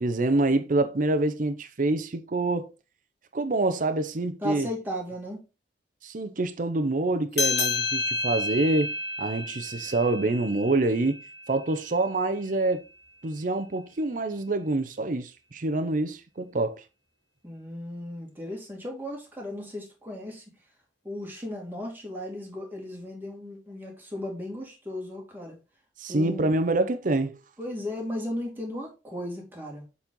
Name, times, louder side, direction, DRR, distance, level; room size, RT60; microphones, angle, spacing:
voice 1, 0.0-2.7 3.3-4.7 6.0-8.9 9.2-11.2 11.5-12.8 13.2-16.8 26.0-27.4, right 2 dB, 50° right, 0.7 m, -26 dB
voice 2, 4.4-5.4 17.4-20.4 21.0-25.6 26.1-26.5 27.6-29.8, left 1 dB, 10° right, 2.4 m, -36 dB
sound 1, 7.3-12.2, left 3 dB, 65° left, 2.4 m, -31 dB
7.2 x 4.2 x 3.8 m
head